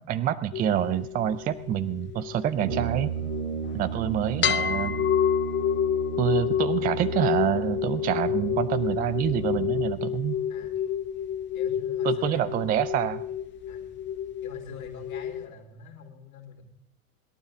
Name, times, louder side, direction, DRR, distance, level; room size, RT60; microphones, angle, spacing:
voice 1, 0.1-3.1 3.7-4.9 6.2-10.4 12.0-13.2, right 10 dB, 20° right, 15 dB, 0.5 m, -27 dB
sound 1, 0.5-3.9 4.4-15.5, left 9 dB, 25° left, 0.8 m, -29 dB
Brass instrument, 2.6-10.1, right 7 dB, 70° right, 1.1 m, -35 dB
voice 2, 3.7-4.3 10.5-10.8 11.5-12.5 13.7-13.9 14.4-16.6, left 5 dB, 70° left, 0 dB, 3.3 m, -45 dB
21.5 x 12.0 x 3.9 m, 0.73 s
figure-of-eight pair, 80°, 44 cm